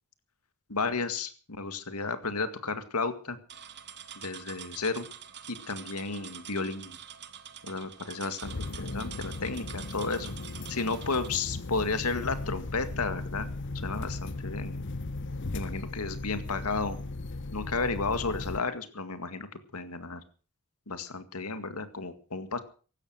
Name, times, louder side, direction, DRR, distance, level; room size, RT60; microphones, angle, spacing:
voice 1, 0.7-3.4 4.2-5.1 5.5-7.0 7.6-10.3 10.7-13.5 13.7-14.9 15.5-17.0 17.5-20.2 20.9-22.6, left 4 dB, 80° left, 10 dB, 2.0 m, -33 dB
sound 1, 3.5-11.3, right 9 dB, 50° right, 1.6 m, -46 dB
sound 2, 8.4-18.6, left 2 dB, 55° left, 0.9 m, -37 dB
16.5 x 12.5 x 6.4 m, 0.40 s
head